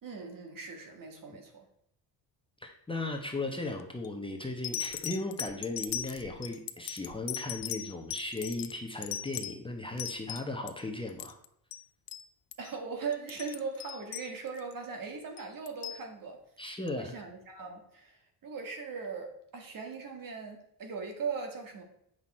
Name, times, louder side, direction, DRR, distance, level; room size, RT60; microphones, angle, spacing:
voice 1, 0.0-1.6 12.6-16.4 16.9-21.8, right 5 dB, 50° right, 4 dB, 2.0 m, -39 dB
voice 2, 2.6-11.3 16.6-17.1, left 2 dB, 10° left, 2 dB, 1.1 m, -36 dB
sound 1, 3.8-4.1 4.6-10.8 11.1-11.5 11.7-11.8 12.1-12.2 12.5-12.7 13.1-14.7 15.4-16.0 16.9-17.0, left 11 dB, 50° left, 0.6 m, -39 dB
8.1 x 6.0 x 4.4 m, 0.76 s
cardioid pair, 105°, 44 cm